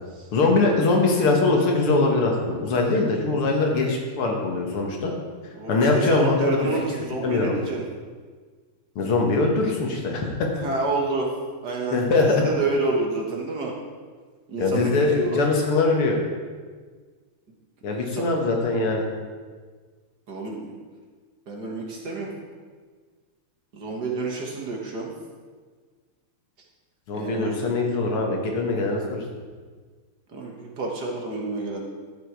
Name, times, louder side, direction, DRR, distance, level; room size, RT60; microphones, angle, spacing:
voice 1, 0.3-5.1 5.7-6.6 7.0-7.5 9.0-10.5 11.9-12.3 14.6-16.2 17.8-19.0 27.1-29.2, left 3 dB, 80° left, 1 dB, 2.4 m, -22 dB
voice 2, 5.5-7.9 10.6-11.3 11.6-13.7 14.5-15.4 17.9-18.3 20.3-20.8 21.5-22.3 23.7-25.1 27.1-27.8 30.3-31.8, right 3 dB, 50° right, -1 dB, 1.9 m, -29 dB
11.5 x 7.6 x 4.7 m, 1.5 s
omnidirectional pair, 2.4 m